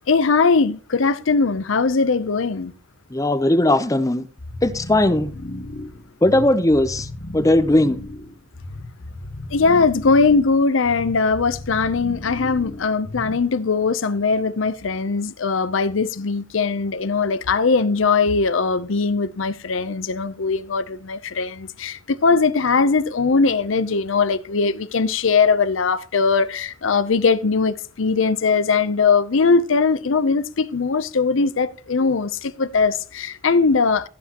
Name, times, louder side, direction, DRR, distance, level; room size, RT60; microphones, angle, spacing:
voice 1, 0.1-2.7 9.5-34.1, left 4 dB, 75° left, 0.7 m, -20 dB
voice 2, 3.1-4.3 4.6-5.3 6.2-7.1 7.3-8.0, left 1 dB, 15° left, 0.7 m, -18 dB
sound 1, 4.4-13.6, left 1 dB, 45° left, 1.2 m, -35 dB
17.0 x 8.0 x 3.0 m
head